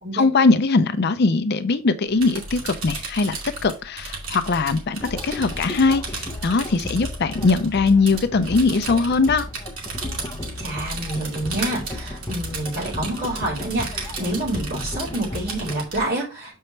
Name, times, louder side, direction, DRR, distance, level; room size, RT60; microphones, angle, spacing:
voice 1, 0.1-3.4 3.6-9.5, left 3 dB, 50° left, 0.5 m, -20 dB
sound 1, 2.1-16.1, right 3 dB, 80° right, 2.5 m, -35 dB
sound 2, 5.0-15.8, left 2 dB, 15° left, 0.7 m, -35 dB
voice 2, 10.6-16.6, right 1 dB, 50° right, 3.9 m, -28 dB
6.9 x 5.5 x 3.2 m
head